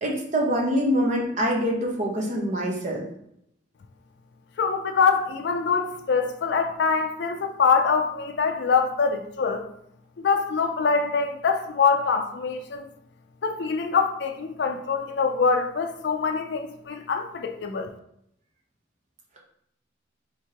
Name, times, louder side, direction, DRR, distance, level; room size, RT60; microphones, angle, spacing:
voice 1, 0.0-3.0, equal, 40° right, -1 dB, 0.9 m, -25 dB
voice 2, 4.6-9.6 10.2-12.9 13.4-17.9, left 5 dB, 60° left, 4 dB, 0.4 m, -24 dB
4.7 x 3.5 x 2.9 m, 0.74 s
head